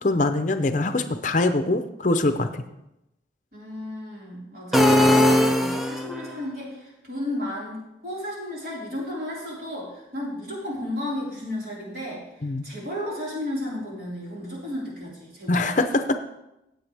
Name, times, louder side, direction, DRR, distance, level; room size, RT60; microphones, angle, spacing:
voice 1, 0.0-2.6 12.4-12.7 15.5-16.2, left 2 dB, 45° left, 9 dB, 0.6 m, -23 dB
voice 2, 3.5-15.9, left 1 dB, 55° right, -6 dB, 4.7 m, -33 dB
sound 1, 4.7-6.3, left 1 dB, ahead, 0.6 m, -19 dB
16.0 x 8.0 x 3.4 m, 0.89 s
head